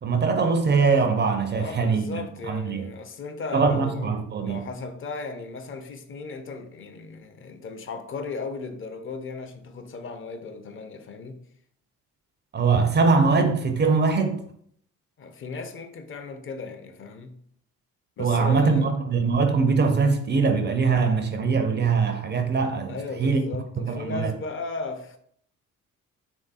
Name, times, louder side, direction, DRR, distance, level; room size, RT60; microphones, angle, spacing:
voice 1, 0.0-2.9 3.5-4.6 12.5-14.4 18.2-23.5 23.8-24.3, right 4 dB, 25° right, 0.4 m, -22 dB
voice 2, 1.5-4.1 4.4-11.4 15.2-17.4 18.2-18.9 22.9-25.2, left 4 dB, 30° left, 0.4 m, -36 dB
3.2 x 2.7 x 2.4 m
hypercardioid pair, 50°, 43 cm